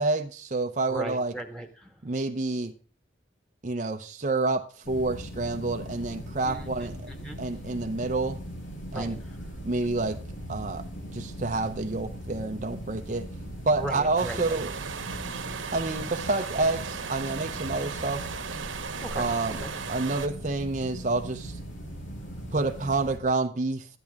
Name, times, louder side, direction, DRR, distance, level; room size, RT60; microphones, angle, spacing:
voice 1, 0.0-1.3 2.0-2.7 3.6-6.9 7.4-8.4 8.9-9.2 9.6-10.2 10.5-13.3 13.7-14.7 15.7-18.2 19.1-19.6 19.9-21.6 22.5-23.9, right 3 dB, 40° right, 5 dB, 0.7 m, -28 dB
voice 2, 0.9-1.9 6.4-7.4 8.9-9.4 13.8-14.6 17.7-17.8 19.0-19.3 19.6-19.7, right 1 dB, 5° left, 2 dB, 1.8 m, -38 dB
sound 1, 4.8-23.2, equal, 85° left, 3.8 m, -40 dB
sound 2, 14.2-20.3, right 6 dB, 90° right, 1.4 m, -36 dB
13.5 x 10.5 x 3.6 m, 0.38 s
head